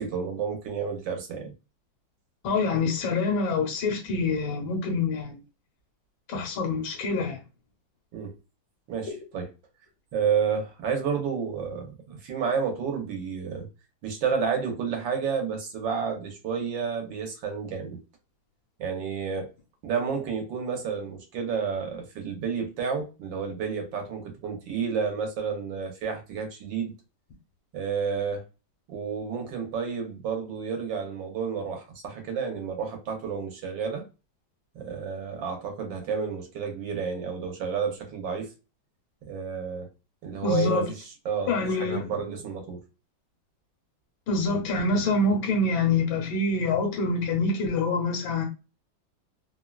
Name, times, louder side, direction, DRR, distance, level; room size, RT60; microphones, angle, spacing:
voice 1, 0.0-1.5 8.1-8.3 8.9-9.5 10.1-13.7 14.0-18.0 18.8-19.5 19.8-26.9 27.7-28.5 28.9-34.0 34.7-38.5 39.3-39.9 40.2-42.8, right 6 dB, 75° right, 1.5 m, -30 dB
voice 2, 2.4-5.4 6.3-7.4 9.1-9.2 40.4-40.8 41.5-42.0 44.3-48.4, left 3 dB, 80° left, 1.5 m, -26 dB
3.5 x 2.2 x 2.3 m
omnidirectional pair, 2.1 m